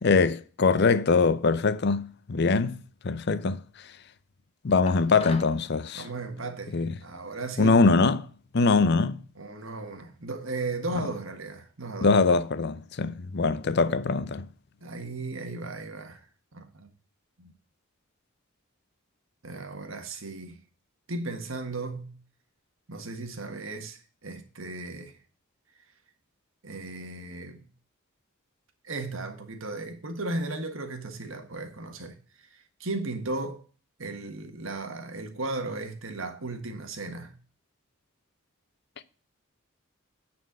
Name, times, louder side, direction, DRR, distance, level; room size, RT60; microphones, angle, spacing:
voice 1, 0.0-3.6 4.6-6.0 6.7-6.9 7.6-8.3 8.5-9.2 12.0-14.5, left 4 dB, 55° left, 0.6 m, -23 dB
sound 1, 4.9-5.6, left 3 dB, 30° left, 1.2 m, -41 dB
voice 2, 5.9-7.8 9.4-12.1 14.8-16.2 16.5-16.9 17.4-17.5 19.4-20.6 21.1-22.2 22.9-25.2 26.6-27.7 28.8-33.6 34.0-37.4, right 2 dB, 70° right, 1.6 m, -36 dB
9.4 x 4.4 x 7.4 m
head